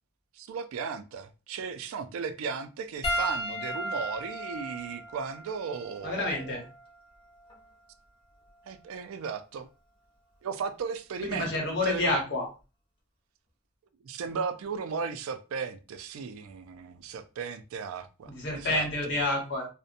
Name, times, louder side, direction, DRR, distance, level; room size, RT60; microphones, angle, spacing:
voice 1, 0.4-6.4 8.7-9.7 10.4-11.5 11.8-12.1 14.0-18.9, right 5 dB, 75° right, 0.3 m, -36 dB
Piano, 3.0-7.7 8.6-8.8 10.8-10.9, equal, 25° left, 0.5 m, -36 dB
voice 2, 6.0-6.6 11.2-12.5 18.3-19.7, left 2 dB, 55° left, 1.0 m, -29 dB
2.6 x 2.1 x 2.5 m
head